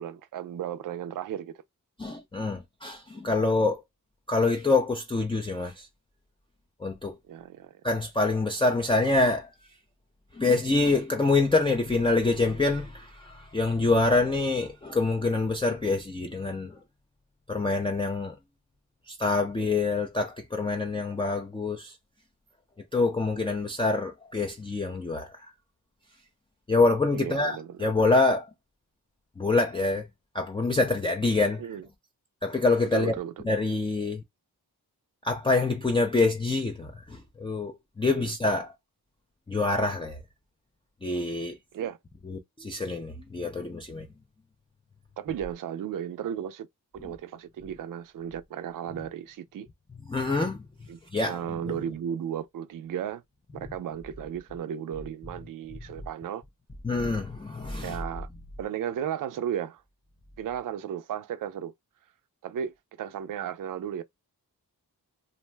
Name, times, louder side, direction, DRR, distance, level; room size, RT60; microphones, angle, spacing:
voice 1, 0.0-1.5 7.3-7.8 14.2-14.3 27.1-27.8 31.6-31.9 32.9-33.4 38.1-38.3 41.7-42.0 45.2-46.7 46.9-49.7 50.9-51.0 51.3-53.2 53.5-56.4 57.8-58.3 58.6-59.8 60.4-61.7 62.4-64.0, right 9 dB, 55° right, 0.4 m, -34 dB
voice 2, 2.0-3.8 4.3-5.9 6.8-7.2 7.8-9.5 10.3-16.8 17.5-18.3 19.1-22.0 22.9-25.5 26.7-28.5 29.4-30.1 30.3-31.6 32.4-33.1 33.5-34.2 35.2-38.7 39.5-40.2 41.0-41.6 42.3-44.1 50.1-50.6 51.1-51.4 56.8-58.0, left 3 dB, 15° left, 0.4 m, -26 dB
2.5 x 2.1 x 3.2 m
wide cardioid pair, 80°, 38 cm